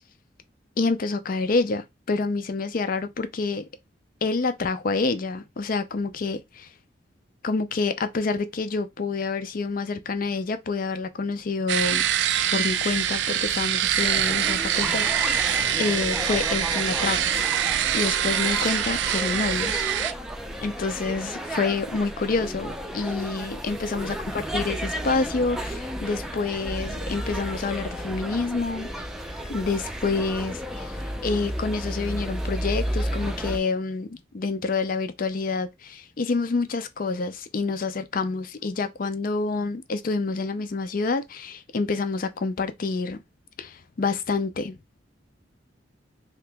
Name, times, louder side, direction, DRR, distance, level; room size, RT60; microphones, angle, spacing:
voice 1, 0.8-3.7 4.2-6.7 7.4-12.0 12.5-15.4 15.8-17.3 17.9-19.9 20.6-24.8 25.0-28.9 29.5-30.6 31.2-43.2 43.6-45.0, left 3 dB, 50° left, 0.5 m, -27 dB
sound 1, 11.7-20.1, right 10 dB, 70° right, 0.3 m, -24 dB
sound 2, 14.0-33.6, equal, 5° right, 0.5 m, -33 dB
2.9 x 2.9 x 3.4 m
head